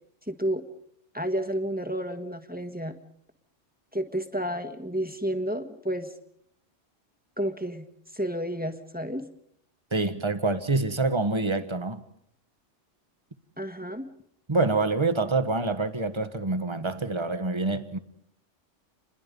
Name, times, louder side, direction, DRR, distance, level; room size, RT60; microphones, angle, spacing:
voice 1, 0.3-0.6 1.1-3.0 3.9-6.1 7.4-7.9 8.1-9.2 13.6-14.1, equal, 5° right, 1.6 m, -31 dB
voice 2, 9.9-12.0 14.5-18.0, right 3 dB, 25° right, 1.4 m, -26 dB
28.5 x 22.0 x 5.4 m
omnidirectional pair, 1.2 m